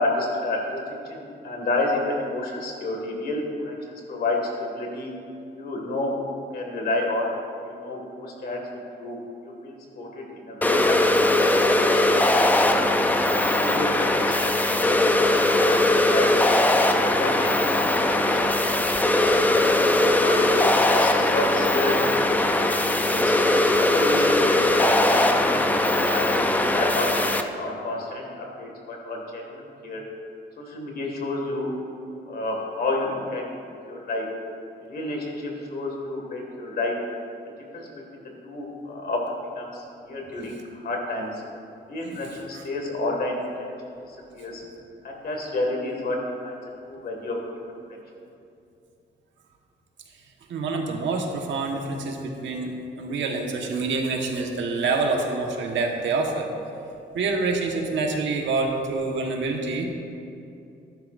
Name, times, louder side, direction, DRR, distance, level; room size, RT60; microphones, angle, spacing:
voice 1, 0.0-5.1 5.6-7.3 7.8-8.6 8.9-9.2 9.4-11.7 12.0-12.2 12.6-12.7 13.3-16.3 17.0-18.6 19.8-22.0 22.2-22.6 23.0-23.3 23.8-25.7 26.0-30.0 30.6-31.7 32.3-33.4 33.9-34.2 34.9-36.9 37.7-41.4 41.9-43.7 44.1-44.6 45.0-46.2 46.4-46.6 46.9-47.7, left 2 dB, 55° left, 0 dB, 2.1 m, -30 dB
sound 1, 10.6-27.4, left 1 dB, 10° left, 0.4 m, -20 dB
voice 2, 50.5-56.5 57.1-59.8, right 3 dB, 90° right, 1 dB, 1.4 m, -26 dB
14.0 x 11.5 x 2.6 m, 2.7 s
wide cardioid pair, 170°, 19 cm